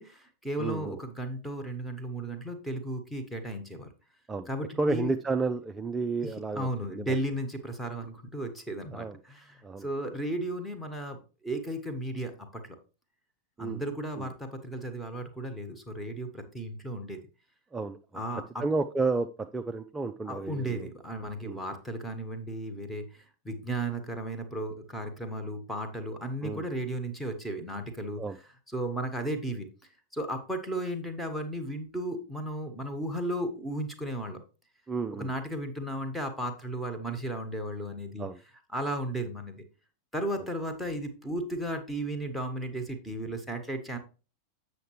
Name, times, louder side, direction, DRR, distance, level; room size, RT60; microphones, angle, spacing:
voice 1, 0.0-3.9 4.5-5.1 6.5-11.2 11.4-12.6 13.6-17.2 18.1-18.6 20.3-23.0 23.4-28.2 28.7-29.7 30.1-34.4 35.2-38.3 38.7-39.5 40.1-44.0, right 1 dB, 5° left, 5 dB, 1.3 m, -34 dB
voice 2, 0.6-1.0 4.3-4.5 4.8-7.2 8.9-9.2 9.6-9.9 13.6-13.8 14.2-14.3 17.7-18.0 18.6-20.9 21.4-21.6 26.4-26.6 28.2-28.4 34.9-35.3 38.2-38.4, right 3 dB, 15° right, 7 dB, 0.4 m, -31 dB
7.8 x 6.6 x 3.1 m, 0.34 s
figure-of-eight pair, 90°, 0 cm